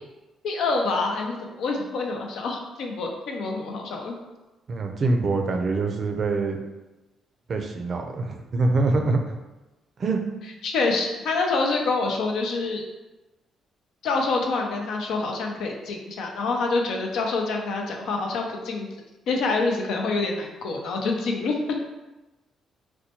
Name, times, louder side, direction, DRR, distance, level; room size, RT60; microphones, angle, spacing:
voice 1, 0.4-4.2 10.6-12.8 14.0-18.9 19.3-21.8, left 3 dB, 80° left, 1 dB, 0.6 m, -26 dB
voice 2, 4.7-6.6 7.5-9.4 10.0-10.2, right 3 dB, 50° right, 4 dB, 0.4 m, -24 dB
4.1 x 2.2 x 2.8 m, 1.1 s
cardioid pair, 90°, 0 cm